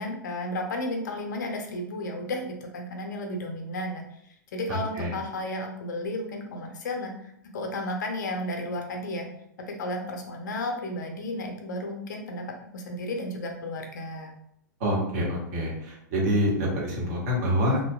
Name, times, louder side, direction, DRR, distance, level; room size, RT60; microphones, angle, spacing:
voice 1, 0.0-4.0 4.5-7.1 7.5-9.3 9.7-14.3, left 1 dB, 65° left, 3 dB, 0.5 m, -33 dB
voice 2, 4.7-5.1 14.8-17.8, equal, 50° right, -3 dB, 1.0 m, -26 dB
2.7 x 2.2 x 2.3 m, 0.75 s
figure-of-eight pair, 100°, 11 cm